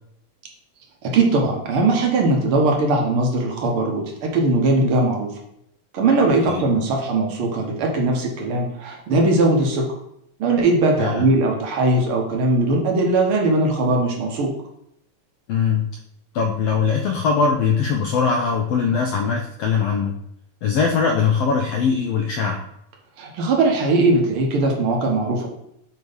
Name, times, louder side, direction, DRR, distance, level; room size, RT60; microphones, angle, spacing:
voice 1, 1.0-5.3 5.9-9.8 10.4-14.5 23.2-25.5, right 2 dB, 60° right, 0 dB, 1.6 m, -20 dB
voice 2, 15.5-15.9 16.3-20.1 20.6-22.6, left 5 dB, 80° left, 3 dB, 1.4 m, -21 dB
7.9 x 3.1 x 5.2 m, 0.76 s
omnidirectional pair, 3.4 m